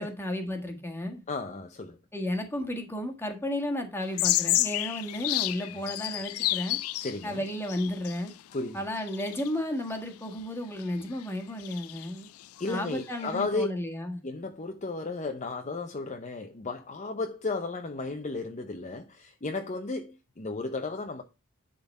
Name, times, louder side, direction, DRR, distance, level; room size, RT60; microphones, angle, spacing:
voice 1, 0.0-1.2 2.1-6.8 7.2-8.3 8.7-12.3 12.7-14.2, left 1 dB, 10° left, 1.6 m, -33 dB
voice 2, 1.3-2.0 5.9-6.0 7.0-7.4 8.5-8.8 12.6-13.7 14.2-21.2, left 3 dB, 35° left, 0.7 m, -34 dB
sound 1, 4.0-8.6 9.0-9.5 10.8-10.9 11.2-11.3 11.6-13.4, left 16 dB, 80° left, 0.4 m, -30 dB
10.5 x 3.9 x 5.3 m
head